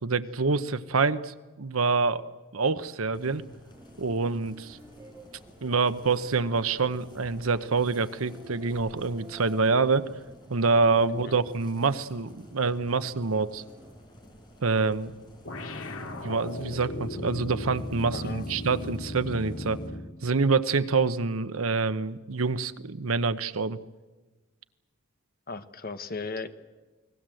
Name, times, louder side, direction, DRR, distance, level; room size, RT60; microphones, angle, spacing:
voice 1, 0.0-3.4 4.0-4.8 5.6-10.1 10.5-13.6 14.6-15.1 16.2-19.8 20.2-23.8, right 4 dB, 85° right, 13 dB, 0.9 m, -26 dB
sound 1, 3.1-19.9, equal, 20° left, 5.0 m, -52 dB
sound 2, 3.7-13.9, right 1 dB, 15° right, 3.0 m, -51 dB
sound 3, 15.5-20.2, left 1 dB, 90° left, 2.4 m, -36 dB
voice 2, 18.1-18.6 25.5-26.5, left 4 dB, 45° left, 9 dB, 1.3 m, -36 dB
29.0 x 20.0 x 7.7 m, 1.2 s
head